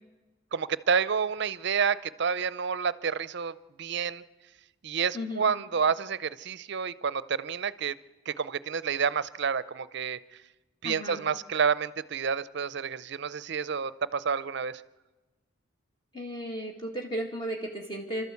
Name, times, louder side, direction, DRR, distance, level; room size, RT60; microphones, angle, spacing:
voice 1, 0.5-4.2 4.8-7.9 8.3-10.2 10.8-14.8, right 6 dB, 60° right, 17 dB, 0.6 m, -29 dB
voice 2, 5.1-5.5 10.8-11.2 16.1-18.2, equal, 25° left, 1 dB, 2.0 m, -35 dB
28.5 x 13.0 x 8.4 m, 1.2 s
head